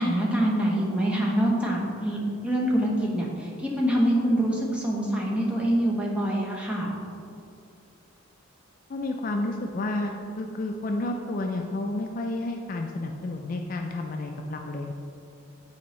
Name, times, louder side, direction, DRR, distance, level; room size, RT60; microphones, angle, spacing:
voice 1, 0.0-6.9, right 1 dB, 5° right, -4 dB, 0.8 m, -25 dB
voice 2, 8.9-14.9, left 2 dB, 40° left, 3 dB, 0.3 m, -31 dB
8.4 x 4.5 x 3.1 m, 2.5 s
head